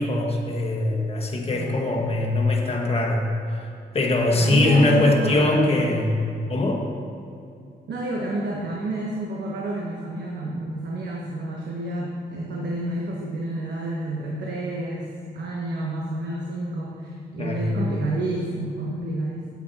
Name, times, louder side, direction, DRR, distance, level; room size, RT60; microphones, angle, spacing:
voice 1, 0.0-6.2 6.5-6.9 17.4-17.7, left 2 dB, 35° left, 0 dB, 1.3 m, -22 dB
voice 2, 1.5-2.0 4.4-6.1 7.9-19.5, right 1 dB, 70° right, -2 dB, 1.1 m, -30 dB
8.7 x 8.4 x 4.2 m, 2.5 s
cardioid pair, 105°, 18 cm